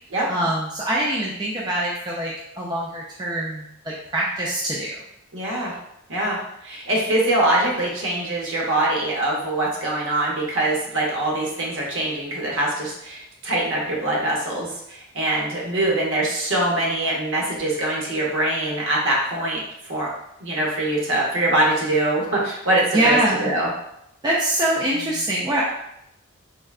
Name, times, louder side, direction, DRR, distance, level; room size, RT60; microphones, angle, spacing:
voice 1, 0.3-4.9 22.9-23.5 24.2-25.6, right 1 dB, 20° right, -5 dB, 0.4 m, -24 dB
voice 2, 5.3-5.8 6.1-19.6 19.9-20.1 20.4-23.7 25.1-25.2, right 1 dB, 65° right, -3 dB, 0.8 m, -23 dB
3.6 x 2.2 x 2.3 m, 0.79 s
head